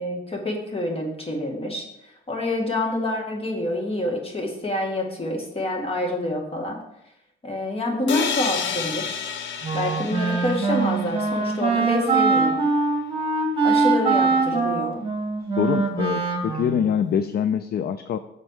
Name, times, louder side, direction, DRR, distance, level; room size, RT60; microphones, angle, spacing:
voice 1, 0.0-1.9 2.3-6.8 7.4-9.2 9.7-12.6 13.6-15.0, left 1 dB, 30° left, 1 dB, 2.0 m, -27 dB
sound 1, 8.1-11.9, left 7 dB, 70° left, 0.8 m, -31 dB
Wind instrument woodwind instrument, 9.6-16.9, right 4 dB, 25° right, 1.8 m, -23 dB
voice 2, 15.6-18.2, left 8 dB, 50° left, 11 dB, 0.4 m, -24 dB
6.6 x 4.3 x 6.4 m, 0.85 s
cardioid pair, 90°, 20 cm